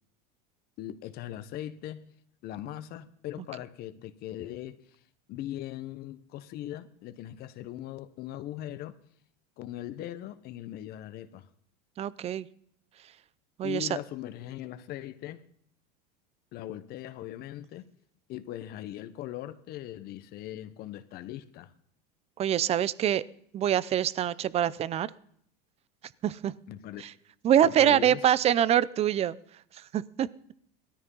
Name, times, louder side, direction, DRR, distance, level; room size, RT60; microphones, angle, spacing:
voice 1, 0.8-2.1 2.4-4.9 5.3-9.0 9.6-11.5 13.6-15.4 16.5-17.9 18.3-21.7 26.7-27.0 27.6-28.2, left 12 dB, 50° left, 1.1 m, -40 dB
voice 2, 12.0-12.5 13.6-13.9 22.4-23.2 23.5-25.1 26.2-26.5 27.0-27.1 27.4-29.4 29.9-30.3, right 10 dB, 30° right, 0.6 m, -25 dB
18.0 x 13.5 x 5.5 m
supercardioid pair, 120°, 21 cm